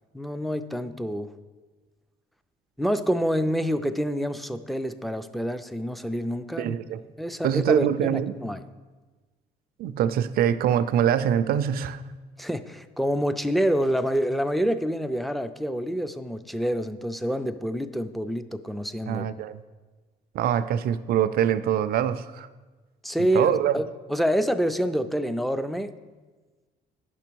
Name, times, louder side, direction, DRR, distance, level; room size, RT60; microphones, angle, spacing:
voice 1, 0.1-1.3 2.8-6.8 7.2-8.6 12.4-19.3 23.0-25.9, equal, ahead, 11 dB, 0.4 m, -27 dB
voice 2, 6.6-7.0 7.4-8.4 9.8-12.0 19.1-19.6 20.3-22.5 23.3-23.7, right 9 dB, 65° right, 13 dB, 0.4 m, -24 dB
9.4 x 6.1 x 4.6 m, 1.3 s
cardioid pair, 110°, 17 cm